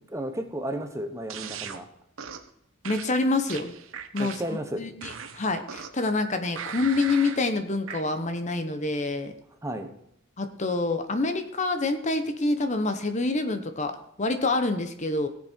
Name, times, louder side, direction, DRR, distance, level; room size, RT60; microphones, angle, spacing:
voice 1, 0.1-1.9 4.2-4.8 9.6-9.9, right 1 dB, 15° right, 6 dB, 1.2 m, -33 dB
sound 1, 1.3-1.8 2.2-2.5 2.8-4.6 5.0-6.1 6.6-7.4 7.9-8.0, right 7 dB, 90° right, 1.2 m, -38 dB
voice 2, 2.8-3.7 4.1-4.4 4.8-9.3 10.4-15.3, left 3 dB, 35° left, 8 dB, 1.0 m, -27 dB
17.5 x 7.5 x 4.5 m, 0.77 s
head